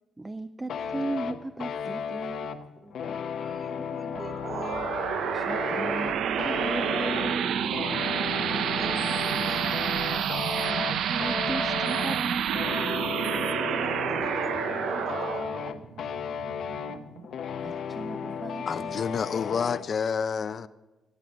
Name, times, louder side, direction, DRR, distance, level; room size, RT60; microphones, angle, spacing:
voice 1, 0.2-2.6 5.3-7.7 10.7-13.1 17.6-19.2, right 2 dB, 15° right, 0.4 m, -36 dB
sound 1, 0.7-19.9, left 7 dB, 75° left, 0.8 m, -35 dB
voice 2, 2.7-5.0 8.2-10.3 13.7-16.0, right 2 dB, 45° right, 2.3 m, -44 dB
sound 2, 4.1-17.3, right 9 dB, 90° right, 0.6 m, -29 dB
voice 3, 18.7-20.7, left 6 dB, 50° left, 0.5 m, -29 dB
16.5 x 7.9 x 8.4 m
cardioid pair, 125°, 0 cm